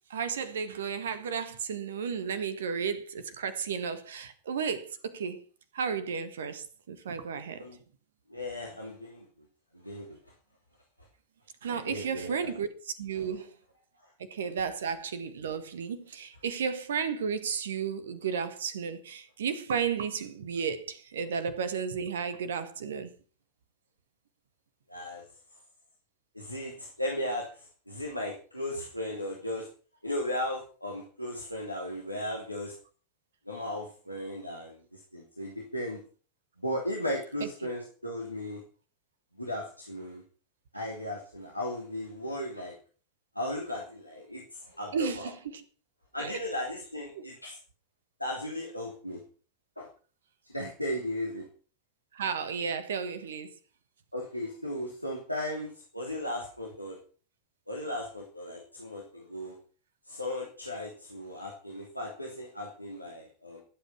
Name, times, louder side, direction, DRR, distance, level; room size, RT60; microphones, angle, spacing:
voice 1, 0.1-5.4 5.7-7.6 11.6-13.5 14.3-23.1 44.9-45.6 46.2-46.4 47.2-47.3 52.1-53.5, right 6 dB, 65° right, 1.6 m, -33 dB
voice 2, 8.3-9.3 9.7-10.2 11.7-12.5 13.2-13.4 24.9-25.2 26.3-29.7 30.0-32.7 33.5-36.0 36.6-38.6 39.4-40.2 40.7-42.8 43.3-45.3 46.1-47.6 48.2-49.2 49.8-49.9 50.4-51.5 54.1-57.0 57.7-59.6 60.1-63.6, left 1 dB, 90° left, 3.0 m, -36 dB
20.5 x 8.5 x 5.8 m
figure-of-eight pair, 90°, 0 cm